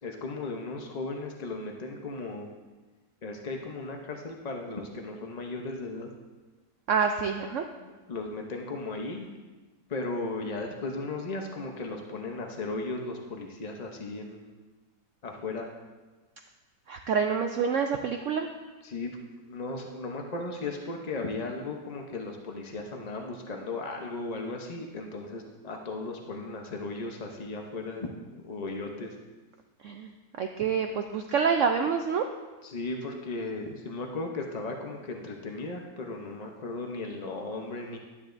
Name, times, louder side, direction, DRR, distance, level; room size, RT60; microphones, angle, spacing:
voice 1, 0.0-2.5 3.2-6.1 7.8-9.3 9.9-14.4 15.2-15.7 18.8-29.1 32.6-38.0, left 3 dB, 55° left, 2 dB, 0.4 m, -36 dB
voice 2, 6.9-7.6 16.9-18.5 29.8-30.1 30.4-32.3, right 6 dB, 80° right, 5 dB, 0.6 m, -27 dB
12.0 x 9.7 x 2.6 m, 1.3 s
omnidirectional pair, 1.9 m